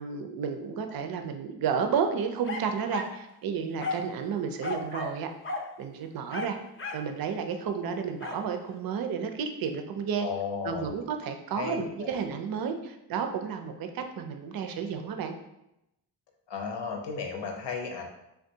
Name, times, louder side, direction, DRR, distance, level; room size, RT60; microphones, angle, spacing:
voice 1, 0.0-5.3 5.8-6.6 6.9-10.3 10.6-15.3, right 6 dB, 55° right, 6 dB, 0.5 m, -32 dB
sound 1, 2.4-3.2 3.8-4.1 4.6-5.2 5.4-5.7 6.3-7.1 8.2-8.4, left 3 dB, 30° left, 0.5 m, -35 dB
voice 2, 10.2-10.9 11.6-12.1 16.5-18.1, left 5 dB, 75° left, 2 dB, 0.7 m, -34 dB
3.4 x 2.3 x 2.7 m, 0.86 s
cardioid pair, 65°, 42 cm